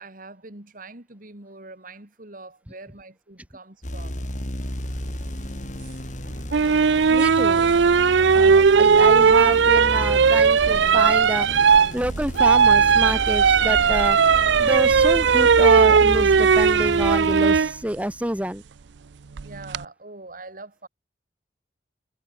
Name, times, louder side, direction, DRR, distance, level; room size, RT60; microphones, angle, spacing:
voice 1, 0.0-4.2 19.4-20.9, right 2 dB, 50° right, 3.6 m, -43 dB
sound 1, 3.8-17.6, left 1 dB, 45° left, 4.4 m, -33 dB
sound 2, 6.5-17.7 19.4-19.8, right 6 dB, 90° right, 0.5 m, -17 dB
voice 2, 7.1-7.7 8.3-11.5 11.9-14.2 14.6-18.6, right 1 dB, 10° right, 1.9 m, -28 dB
head